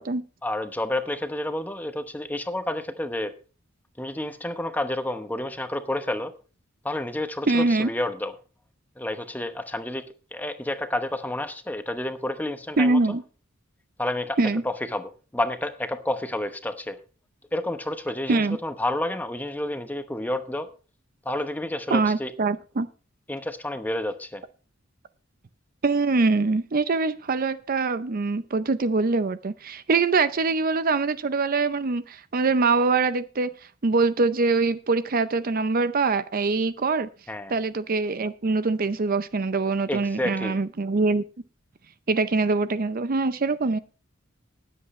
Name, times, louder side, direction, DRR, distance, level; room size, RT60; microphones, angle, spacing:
voice 1, 0.4-3.3 4.0-6.3 6.8-8.3 9.0-10.0 10.3-13.0 14.0-14.4 14.6-17.0 17.5-20.7 21.2-22.3 23.3-24.4 37.3-37.5 39.9-40.6, left 1 dB, 10° left, 0.9 m, -30 dB
voice 2, 7.5-7.9 12.8-13.2 14.4-14.6 18.3-18.6 21.9-22.9 25.8-33.5 33.8-37.1 37.5-41.2 42.1-43.8, right 3 dB, 45° right, 0.6 m, -23 dB
20.0 x 8.0 x 3.2 m
head